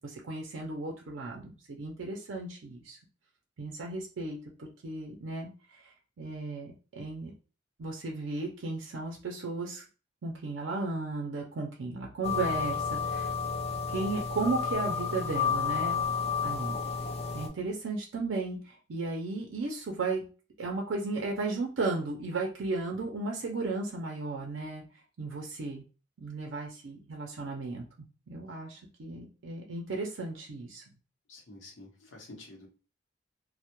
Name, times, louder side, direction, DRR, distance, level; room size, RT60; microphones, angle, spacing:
voice 1, 0.0-3.0 3.6-5.5 6.2-7.3 7.8-9.8 10.2-13.3 13.9-16.1 16.4-16.8 17.3-20.3 20.6-24.8 25.2-25.8 26.2-27.9 28.3-30.8, right 3 dB, 75° right, 0 dB, 0.5 m, -35 dB
sound 1, 12.2-17.5, left 5 dB, 35° left, 0.4 m, -31 dB
voice 2, 31.3-32.7, left 2 dB, 80° left, 1 dB, 0.8 m, -49 dB
2.1 x 2.1 x 2.8 m, 0.34 s
head